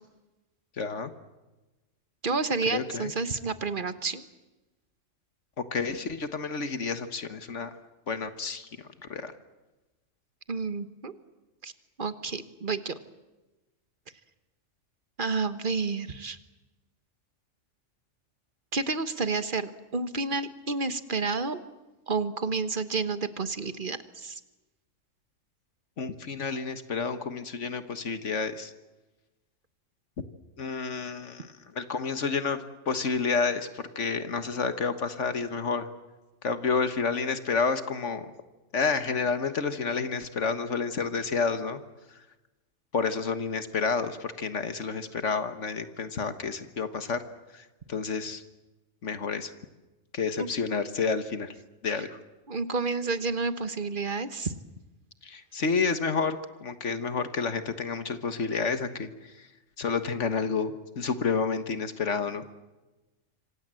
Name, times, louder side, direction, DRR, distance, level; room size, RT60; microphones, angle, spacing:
voice 1, 0.8-1.1 2.7-3.1 5.6-7.8 8.1-9.3 26.0-28.7 30.6-32.6 32.9-35.9 36.4-38.3 38.7-41.8 42.9-47.2 47.5-48.4 49.0-49.5 50.1-51.5 51.8-52.1 55.2-59.5 59.8-62.5, left 5 dB, 65° left, 11 dB, 1.8 m, -30 dB
voice 2, 2.2-4.2 10.5-11.1 11.6-11.7 12.0-12.9 15.2-16.4 18.7-21.6 22.1-24.4 50.4-50.5 51.9-52.1 52.5-54.5, right 4 dB, 40° right, 12 dB, 1.4 m, -30 dB
26.5 x 26.0 x 7.7 m, 1.1 s
omnidirectional pair, 1.3 m